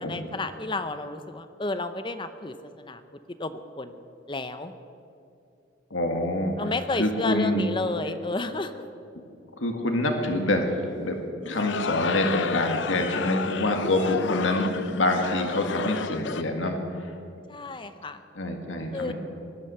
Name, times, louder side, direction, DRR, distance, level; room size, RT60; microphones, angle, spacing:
voice 1, 0.0-3.0 3.4-4.0 4.3-4.7 6.6-8.8 17.5-18.2 18.9-19.1, left 2 dB, 25° left, 10 dB, 0.6 m, -31 dB
voice 2, 5.9-6.5 7.0-7.6 9.6-11.2 11.5-16.8 18.4-19.1, left 1 dB, 85° left, 4 dB, 1.8 m, -26 dB
sound 1, 11.4-16.4, left 6 dB, 65° left, 0.5 m, -31 dB
18.0 x 12.0 x 6.8 m, 2.6 s
head